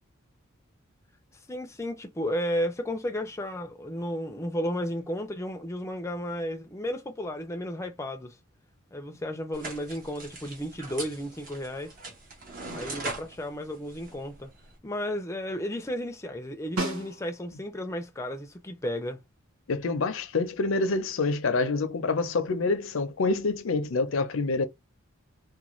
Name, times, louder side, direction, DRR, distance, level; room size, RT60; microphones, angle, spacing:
voice 1, 1.5-8.4 8.9-11.9 12.7-14.5 14.8-19.2, equal, 15° left, 0.5 m, -33 dB
sound 1, 9.5-14.8, right 3 dB, 45° right, 1.0 m, -41 dB
Snare drum, 16.8-17.7 22.1-22.2, right 2 dB, 90° right, 0.8 m, -33 dB
voice 2, 19.7-24.7, left 3 dB, 75° left, 0.5 m, -27 dB
2.4 x 2.3 x 3.0 m
head